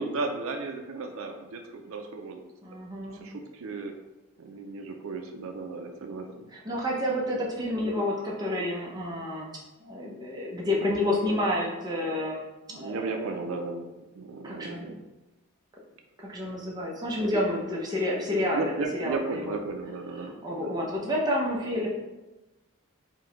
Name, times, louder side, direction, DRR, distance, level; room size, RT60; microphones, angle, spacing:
voice 1, 0.0-2.4 3.2-3.9 4.4-6.5 12.7-14.9 18.5-20.8, right 3 dB, 70° right, 4 dB, 0.4 m, -35 dB
voice 2, 2.6-3.3 6.5-9.5 9.8-12.4 12.7-13.3 14.4-14.9 16.2-18.7 19.0-19.6 20.2-21.9, left 1 dB, 20° right, -3 dB, 0.6 m, -29 dB
4.5 x 2.2 x 3.8 m, 1.0 s
head